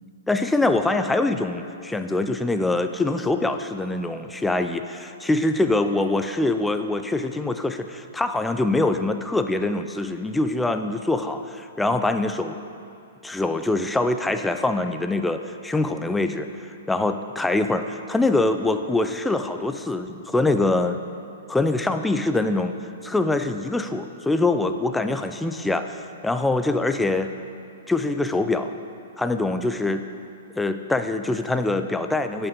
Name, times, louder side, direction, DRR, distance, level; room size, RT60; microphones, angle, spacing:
voice 1, 0.3-12.6 13.2-21.0 21.5-22.8 23.0-27.3 27.9-28.7 29.2-30.0 30.6-32.5, left 2 dB, 5° left, 8 dB, 0.4 m, -24 dB
9.0 x 5.7 x 6.9 m, 2.5 s
hypercardioid pair, 140°, 0 cm